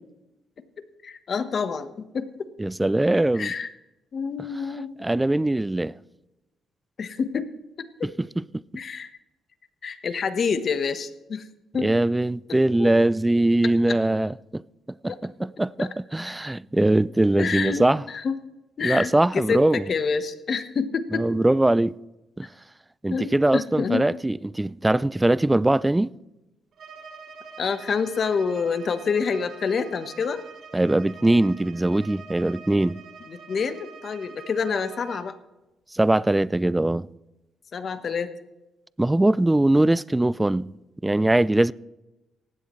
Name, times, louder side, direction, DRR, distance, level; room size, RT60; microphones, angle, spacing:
voice 1, 1.0-2.5 3.3-3.7 4.1-4.9 7.0-7.5 7.8-8.1 8.7-9.1 9.8-11.5 11.7-11.9 12.8-12.9 15.1-15.2 15.8-15.9 16.2-16.4 17.4-18.4 18.8-21.4 23.1-24.1 27.6-30.4 33.3-35.4 37.7-38.3, left 5 dB, 50° left, 1.2 m, -27 dB
voice 2, 2.6-3.5 5.0-5.9 8.4-8.5 11.8-14.6 15.0-18.0 18.8-19.8 21.1-22.0 22.4-22.5 23.0-26.1 30.7-33.0 35.9-37.1 39.0-40.7 41.0-41.7, right 1 dB, 10° right, 0.3 m, -21 dB
Bowed string instrument, 26.7-35.3, right 5 dB, 60° right, 3.1 m, -45 dB
18.0 x 15.5 x 3.2 m
cardioid pair, 90°, 0 cm